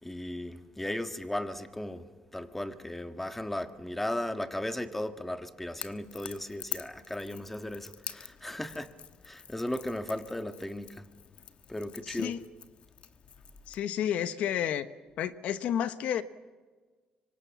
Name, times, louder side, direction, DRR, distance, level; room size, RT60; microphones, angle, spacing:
voice 1, 0.0-8.9 9.2-11.1 11.7-12.4, left 1 dB, 10° left, 1.6 m, -36 dB
Crackle / Crack, 5.7-13.9, left 8 dB, 55° left, 1.3 m, -46 dB
voice 2, 12.1-12.4 13.7-14.9 15.2-16.2, left 10 dB, 75° left, 1.0 m, -31 dB
25.5 x 25.0 x 7.3 m
cardioid pair, 105°, 2 cm